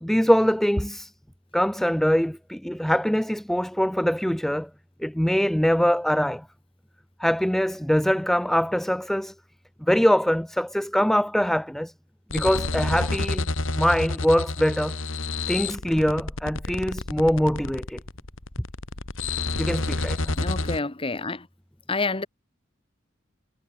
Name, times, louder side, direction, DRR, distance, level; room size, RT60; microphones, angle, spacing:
voice 1, 0.0-1.1 1.5-4.7 5.0-6.4 7.2-9.3 9.8-11.9 12.3-13.5 13.7-15.0 15.5-18.0 19.6-20.3, equal, ahead, 0.3 m, -23 dB
sound 1, 12.3-20.8, left 2 dB, 80° left, 3.4 m, -29 dB
voice 2, 20.4-21.5 21.9-22.3, left 3 dB, 30° left, 1.3 m, -28 dB
head